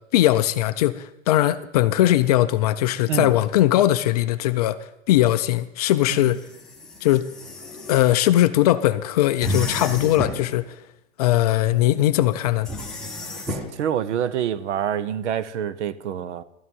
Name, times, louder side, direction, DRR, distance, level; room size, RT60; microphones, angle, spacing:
voice 1, 0.1-4.8 5.1-6.4 7.0-7.3 7.9-10.8 11.2-12.7, left 14 dB, 35° left, 0.4 m, -20 dB
sound 1, 6.0-8.1 9.4-10.5 12.6-13.7, left 1 dB, ahead, 1.2 m, -32 dB
voice 2, 13.5-16.4, right 9 dB, 70° right, 0.9 m, -27 dB
13.0 x 9.7 x 5.4 m
hypercardioid pair, 140°, 36 cm